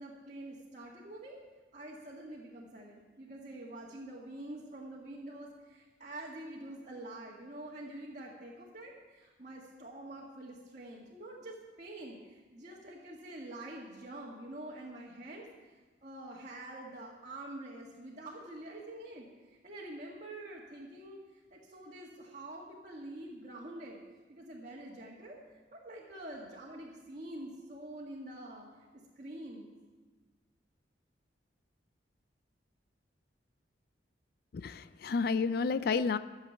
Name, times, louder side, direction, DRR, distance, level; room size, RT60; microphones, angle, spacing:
voice 1, 0.0-1.4 1.7-15.7 16.0-21.2 21.5-24.0 24.3-25.4 25.7-28.7 29.2-29.7, right 1 dB, 40° right, -5 dB, 1.8 m, -46 dB
voice 2, 34.5-36.2, left 4 dB, 55° left, 14 dB, 0.3 m, -30 dB
14.0 x 7.4 x 8.2 m, 1.3 s
head